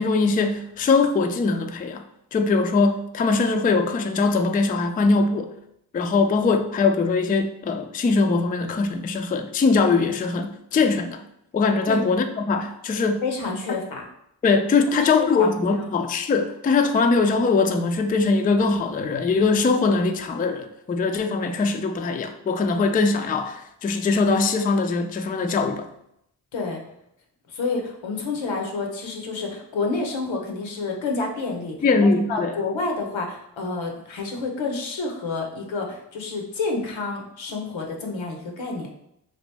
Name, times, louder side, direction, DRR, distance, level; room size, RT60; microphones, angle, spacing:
voice 1, 0.0-2.0 2.3-5.5 5.9-11.2 11.5-13.2 13.7-13.8 14.4-25.9 31.8-32.5, left 4 dB, 20° left, 7 dB, 0.3 m, -21 dB
voice 2, 13.2-14.0 15.0-15.9 26.5-26.8 27.5-31.8 32.3-38.9, left 3 dB, 85° left, 1 dB, 0.8 m, -29 dB
3.0 x 2.5 x 3.2 m, 0.77 s
cardioid pair, 45°, 45 cm